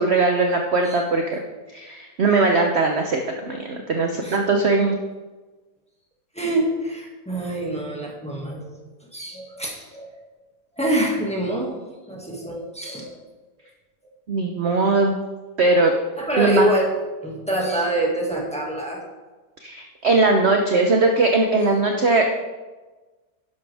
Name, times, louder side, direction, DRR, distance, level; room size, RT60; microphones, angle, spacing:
voice 1, 0.0-1.4 1.7-5.0 14.3-15.2 15.6-15.9 16.4-16.7 19.6-22.3, right 3 dB, 50° right, 3 dB, 1.0 m, -20 dB
voice 2, 6.3-8.7 9.0-10.1 10.8-11.8 12.1-13.2 16.2-16.9 17.2-19.0, right 1 dB, 5° left, -2 dB, 1.9 m, -25 dB
11.5 x 11.0 x 3.4 m, 1.2 s
omnidirectional pair, 1.8 m